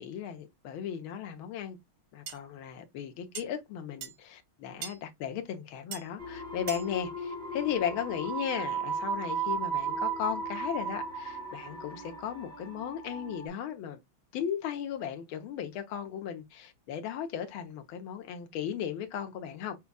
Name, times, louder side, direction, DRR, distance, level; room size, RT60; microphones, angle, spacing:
voice 1, 0.0-1.8 2.1-14.0 14.3-19.8, left 9 dB, 75° left, 1.7 m, -36 dB
sound 1, 2.3-2.4 3.4-3.5 4.0-4.2 4.8-5.0 5.9-6.1 6.7-6.9, right 7 dB, 80° right, 1.8 m, -39 dB
sound 2, 6.2-13.5, right 4 dB, 5° left, 0.8 m, -35 dB
6.6 x 2.4 x 2.2 m
omnidirectional pair, 2.3 m